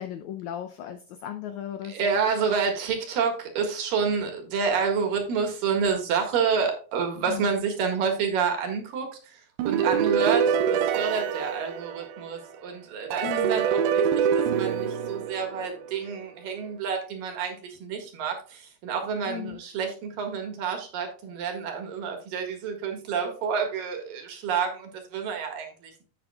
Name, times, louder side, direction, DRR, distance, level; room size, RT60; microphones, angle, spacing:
voice 1, 0.0-2.2 7.3-7.6 13.2-13.6 19.3-19.6, left 10 dB, 90° left, 7 dB, 1.6 m, -36 dB
voice 2, 1.8-26.0, right 6 dB, 70° right, 4 dB, 3.4 m, -29 dB
sound 1, 9.6-12.4 13.1-15.9, right 7 dB, 85° right, 2.6 m, -25 dB
10.5 x 7.9 x 2.3 m, 0.39 s
omnidirectional pair, 4.2 m